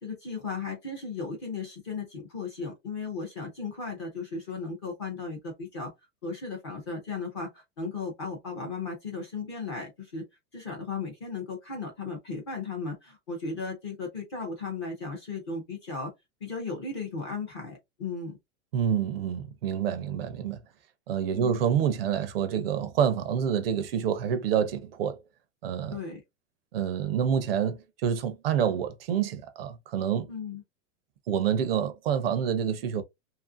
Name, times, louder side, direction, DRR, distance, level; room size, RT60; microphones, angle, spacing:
voice 1, 0.0-5.9 6.2-10.2 10.5-16.1 16.4-18.4 21.3-21.6 25.9-26.2 30.3-30.6, left 4 dB, 20° left, 0.4 m, -36 dB
voice 2, 18.7-20.6 21.1-25.2 25.6-26.0 26.7-30.3 31.3-33.0, right 8 dB, 50° right, 0.4 m, -27 dB
2.8 x 2.4 x 2.4 m
supercardioid pair, 175°, 40 cm